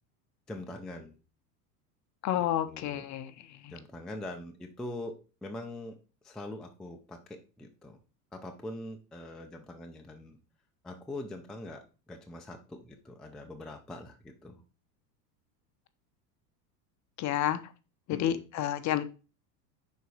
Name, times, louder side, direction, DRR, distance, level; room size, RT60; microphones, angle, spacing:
voice 1, 0.5-1.2 2.3-3.1 3.7-5.1 5.4-6.0 6.2-8.0 8.3-10.4 10.8-14.6 18.1-18.4, left 1 dB, ahead, 0.4 m, -43 dB
voice 2, 2.2-3.3 3.6-3.7 17.2-17.6 18.1-19.0, left 11 dB, 35° left, 0.7 m, -30 dB
5.5 x 4.1 x 4.7 m
supercardioid pair, 115°, 49 cm